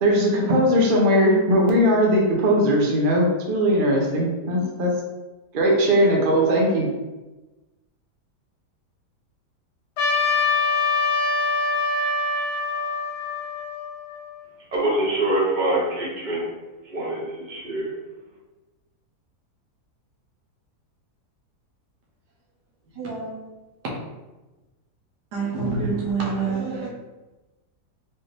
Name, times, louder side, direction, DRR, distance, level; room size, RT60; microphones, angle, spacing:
voice 1, 0.0-4.9 5.5-6.9, equal, 50° right, -2 dB, 0.6 m, -19 dB
Trumpet, 10.0-14.4, left 4 dB, 75° left, 1.2 m, -24 dB
voice 2, 14.7-16.5 16.9-17.9, right 1 dB, 30° right, -5 dB, 1.0 m, -24 dB
voice 3, 22.9-23.5 25.3-27.0, right 4 dB, 85° right, -3 dB, 1.5 m, -27 dB
4.2 x 2.5 x 3.3 m, 1.1 s
omnidirectional pair, 1.8 m